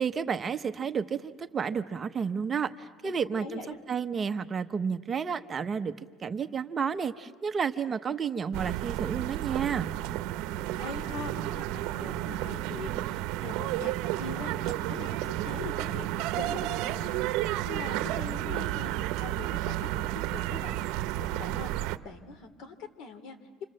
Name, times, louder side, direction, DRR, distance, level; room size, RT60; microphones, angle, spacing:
voice 1, 0.0-3.6 3.9-5.9 6.2-9.9, right 6 dB, 25° right, 9 dB, 0.8 m, -31 dB
voice 2, 3.0-3.8 10.1-13.9 14.2-16.1 16.4-21.7 22.0-23.4, left 4 dB, 65° left, 9 dB, 2.8 m, -43 dB
sound 1, 8.5-22.0, right 15 dB, 75° right, 0.8 m, -32 dB
30.0 x 26.0 x 7.6 m, 1.4 s
cardioid pair, 145°, 0 cm